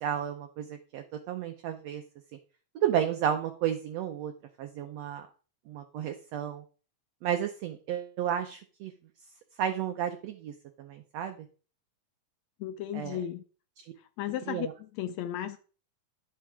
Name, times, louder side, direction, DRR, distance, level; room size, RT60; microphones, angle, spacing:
voice 1, 0.0-2.0 2.7-4.3 4.6-5.3 5.7-6.6 7.2-8.9 9.6-11.5 12.9-13.2 14.5-14.7, right 9 dB, 70° right, 1.7 m, -32 dB
voice 2, 12.6-13.4 14.2-15.6, left 11 dB, 75° left, 1.7 m, -35 dB
11.0 x 7.5 x 3.6 m
omnidirectional pair, 3.7 m